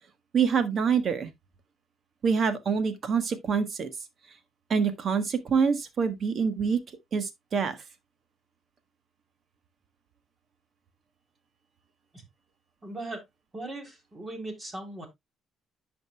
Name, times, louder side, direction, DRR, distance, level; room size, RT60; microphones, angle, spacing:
voice 1, 0.3-1.3 2.2-3.9 4.7-6.8 7.1-7.8, right 6 dB, 50° right, 1.4 m, -26 dB
voice 2, 12.8-13.2 13.5-15.1, right 2 dB, 30° right, 3.3 m, -38 dB
11.0 x 5.2 x 2.3 m
cardioid pair, 90°, 0 cm